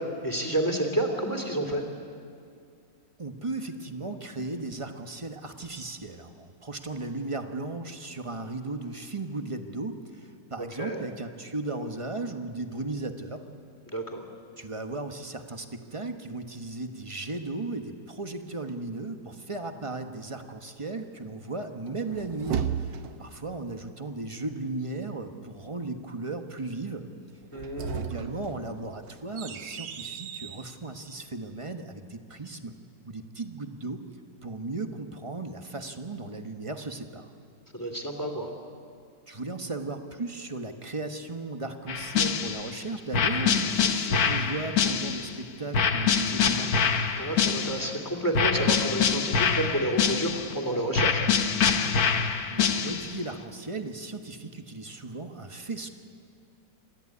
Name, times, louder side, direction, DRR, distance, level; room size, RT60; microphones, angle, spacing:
voice 1, 0.0-1.8 10.8-11.0 13.9-14.2 27.5-28.1 37.7-38.5 47.2-51.2, right 1 dB, 10° left, 3 dB, 2.7 m, -30 dB
voice 2, 3.2-13.4 14.6-27.1 27.9-32.8 33.0-34.0 34.4-37.3 39.3-46.8 52.5-55.9, right 2 dB, 20° right, 6 dB, 0.9 m, -36 dB
sound 1, 21.9-23.4 27.4-30.7, right 8 dB, 70° right, 1.6 m, -35 dB
sound 2, 41.9-42.7 43.1-45.3 45.7-48.0 48.3-50.6 50.9-53.2, left 6 dB, 55° left, 1.4 m, -25 dB
27.5 x 14.0 x 9.7 m, 2.4 s
omnidirectional pair, 2.1 m